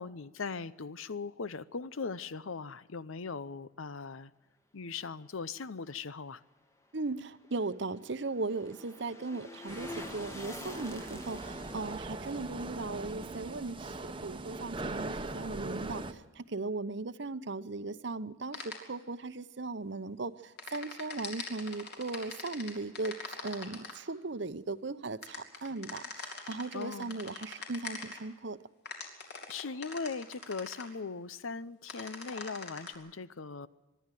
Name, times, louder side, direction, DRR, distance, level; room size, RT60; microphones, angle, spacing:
voice 1, 0.0-4.3 4.7-6.4 26.7-27.2 29.5-33.7, left 4 dB, 80° left, 0.7 m, -39 dB
voice 2, 6.9-23.2 23.4-28.6, right 3 dB, 60° right, 0.8 m, -38 dB
sound 1, 7.1-14.3 14.6-14.7, left 1 dB, 15° left, 1.2 m, -48 dB
sound 2, 9.7-16.1, right 2 dB, 25° right, 0.9 m, -41 dB
sound 3, 18.5-18.8 20.6-23.9 25.2-28.2 28.9-30.8 31.9-32.9, left 4 dB, 55° left, 3.7 m, -42 dB
24.0 x 12.0 x 9.2 m
head